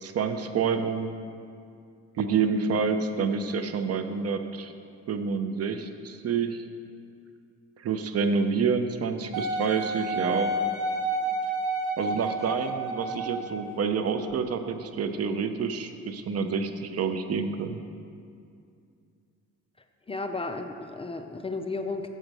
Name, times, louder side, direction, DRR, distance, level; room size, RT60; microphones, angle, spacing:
voice 1, 0.0-1.1 2.2-4.7 5.1-6.6 7.8-10.5 12.0-17.8, right 5 dB, 55° right, 8 dB, 0.7 m, -28 dB
Wind instrument woodwind instrument, 9.3-13.6 14.3-14.4, right 1 dB, 80° right, 1.5 m, -30 dB
voice 2, 20.1-22.1, left 3 dB, 20° left, 6 dB, 0.5 m, -33 dB
7.7 x 6.4 x 6.1 m, 2.4 s
cardioid pair, 90°, 30 cm